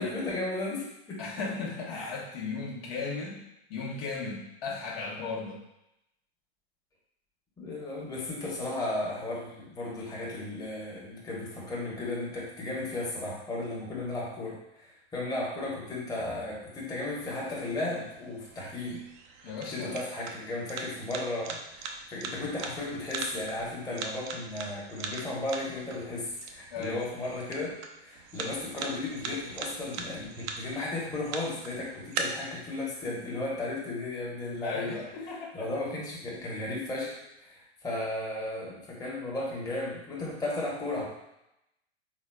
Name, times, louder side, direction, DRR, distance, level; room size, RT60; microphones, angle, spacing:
voice 1, 0.0-1.2 1.9-2.2 7.6-19.1 19.7-35.0 35.5-41.1, left 2 dB, 10° left, -5 dB, 1.1 m, -35 dB
voice 2, 1.2-5.6 19.4-20.0 26.7-27.0 34.6-35.7, left 4 dB, 60° left, -3 dB, 1.2 m, -36 dB
sound 1, 17.2-32.2, right 5 dB, 45° right, 0.5 m, -42 dB
4.1 x 3.6 x 2.3 m, 0.84 s
hypercardioid pair, 100°, 33 cm